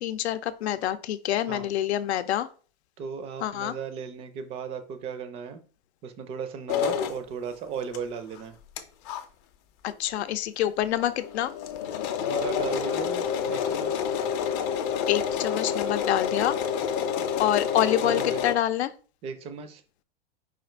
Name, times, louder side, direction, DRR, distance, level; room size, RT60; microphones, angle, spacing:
voice 1, 0.0-2.5 3.4-3.8 9.8-11.5 15.1-16.6 17.4-18.9, left 12 dB, 90° left, 12 dB, 0.6 m, -26 dB
voice 2, 3.0-5.6 6.0-8.6 12.2-14.0 18.0-18.4 19.2-19.8, right 6 dB, 20° right, 10 dB, 0.4 m, -36 dB
sound 1, 6.7-7.2 7.9-8.0 8.4-8.5 8.8-8.9 9.0-9.2 9.9-10.0 10.2-10.3 10.6-10.7 11.0-18.5, left 8 dB, 35° left, 0.5 m, -28 dB
4.9 x 2.5 x 4.4 m, 0.38 s
supercardioid pair, 150°, 32 cm